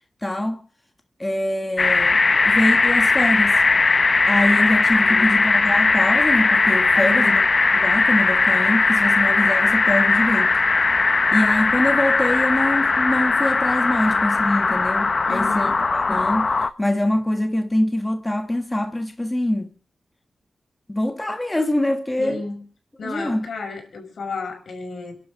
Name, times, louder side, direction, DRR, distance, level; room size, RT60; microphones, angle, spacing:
voice 1, 0.2-0.6 1.2-3.6 4.3-7.4 7.8-10.6 11.3-16.5 16.8-19.7 20.9-22.4 23.0-23.5, left 1 dB, 15° left, 1.4 m, -24 dB
sound 1, 1.8-16.7, left 3 dB, 40° left, 0.9 m, -19 dB
voice 2, 5.0-5.3 6.9-7.4 15.2-15.8 22.2-22.6 23.0-25.2, left 3 dB, 75° left, 6.1 m, -33 dB
29.5 x 11.5 x 3.8 m
wide cardioid pair, 115°, 0 cm